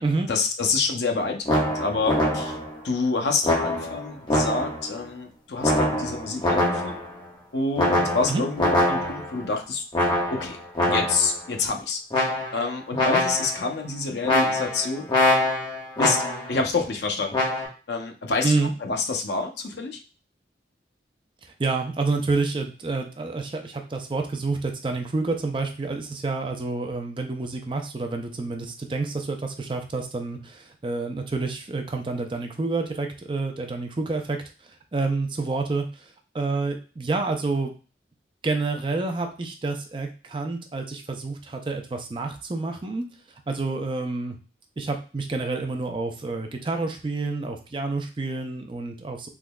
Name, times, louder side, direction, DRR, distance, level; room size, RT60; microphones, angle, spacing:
voice 1, 0.3-2.6 2.8-7.0 7.5-9.8 10.3-10.6 10.9-15.1 16.0-16.2 16.5-17.4 17.9-18.5 18.8-20.0, left 4 dB, 75° left, 3 dB, 0.6 m, -27 dB
sound 1, 1.5-2.8 3.4-4.9 5.6-7.1 7.8-9.4 9.9-11.4 12.1-12.7 12.9-13.7 14.2-16.6 17.3-17.7, left 1 dB, 25° left, 0.9 m, -24 dB
voice 2, 21.6-34.4 34.9-37.7 38.4-43.0 43.5-44.4 44.8-49.3, right 3 dB, 30° right, 4 dB, 0.4 m, -28 dB
3.6 x 3.0 x 2.2 m, 0.35 s
head